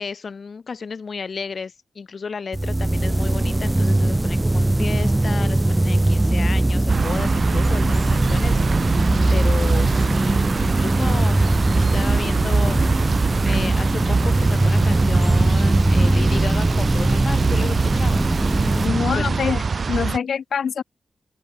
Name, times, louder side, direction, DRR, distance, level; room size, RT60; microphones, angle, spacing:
voice 1, 0.0-13.2 13.4-18.2 18.6-19.6, left 5 dB, 50° left, 3.4 m, -33 dB
sound 1, 2.5-20.0, right 1 dB, 15° right, 2.4 m, -20 dB
sound 2, 6.9-20.2, right 5 dB, 50° right, 1.1 m, -24 dB
voice 2, 18.8-19.6 19.9-20.8, left 7 dB, 80° left, 1.3 m, -24 dB
open air
wide cardioid pair, 165°, 0 cm